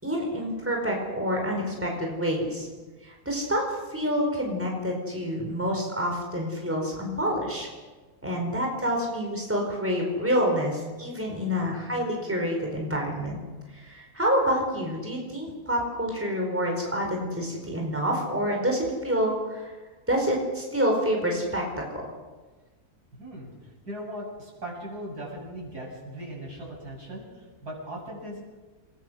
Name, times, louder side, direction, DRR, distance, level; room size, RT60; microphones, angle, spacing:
voice 1, 0.0-2.7 3.0-7.7 8.2-13.4 13.7-19.7 20.1-21.6, equal, 10° right, 0 dB, 4.7 m, -27 dB
voice 2, 8.2-8.6 11.5-11.8 23.1-23.5 23.9-28.4, right 1 dB, 75° right, -2 dB, 8.2 m, -39 dB
28.5 x 21.5 x 6.4 m, 1.3 s
omnidirectional pair, 1.7 m